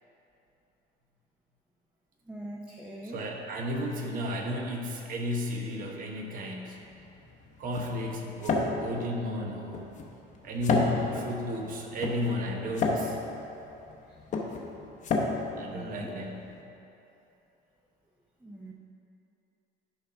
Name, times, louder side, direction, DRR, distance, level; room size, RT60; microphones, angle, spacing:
voice 1, 2.3-3.2 14.1-14.2 15.7-16.1 18.4-18.7, right 1 dB, 5° right, -3 dB, 0.6 m, -42 dB
voice 2, 3.1-6.8 7.6-9.9 10.4-13.2 15.6-16.4, left 1 dB, 45° right, 1 dB, 1.1 m, -33 dB
sound 1, 6.8-16.6, left 3 dB, 40° left, 0.9 m, -32 dB
10.5 x 4.0 x 5.7 m, 2.9 s
cardioid pair, 155°, 19 cm